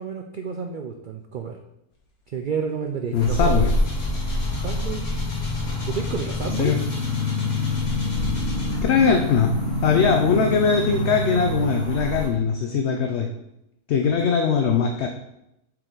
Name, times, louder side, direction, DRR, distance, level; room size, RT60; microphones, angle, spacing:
voice 1, 0.0-1.6 2.3-3.7 4.6-5.1 5.8-6.8, right 6 dB, 75° right, 4 dB, 0.4 m, -30 dB
sound 1, 2.4-2.6 2.9-9.2 9.7-9.8, left 2 dB, 80° left, 1.9 m, -41 dB
voice 2, 3.1-3.7 6.6-6.8 8.8-9.5 9.8-13.3 13.9-15.1, left 6 dB, 60° left, 4 dB, 0.8 m, -21 dB
sound 2, 3.1-12.3, left 1 dB, 30° left, 1.5 m, -26 dB
7.8 x 4.9 x 3.9 m, 0.86 s
omnidirectional pair, 1.5 m